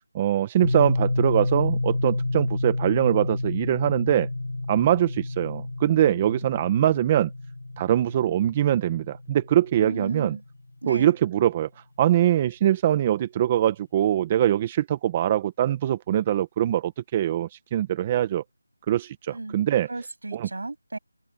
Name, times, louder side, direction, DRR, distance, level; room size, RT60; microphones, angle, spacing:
voice 1, 0.0-4.3 4.7-7.3 7.8-10.4 10.9-11.7 12.0-18.4 18.9-19.9 20.3-20.5, right 11 dB, 15° right, 0.6 m, -23 dB
sound 1, 0.6-10.5, left 2 dB, 75° left, 3.6 m, -30 dB
voice 2, 9.7-10.4 10.8-11.1 19.3-19.6 19.9-21.0, right 2 dB, 65° right, 7.7 m, -34 dB
figure-of-eight pair, 175°, 0 cm